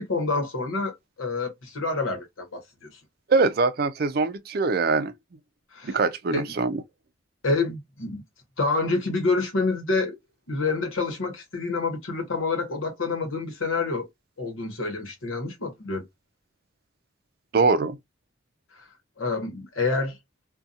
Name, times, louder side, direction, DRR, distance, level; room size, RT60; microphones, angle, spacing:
voice 1, 0.0-3.0 5.7-6.0 6.3-6.4 7.4-8.2 8.6-10.1 10.5-14.1 14.4-16.0 18.7-18.9 19.2-20.2, left 3 dB, 90° left, 1.0 m, -27 dB
voice 2, 3.3-5.1 5.8-6.7 17.5-18.0, right 4 dB, 50° right, 0.4 m, -23 dB
2.7 x 2.2 x 2.4 m
head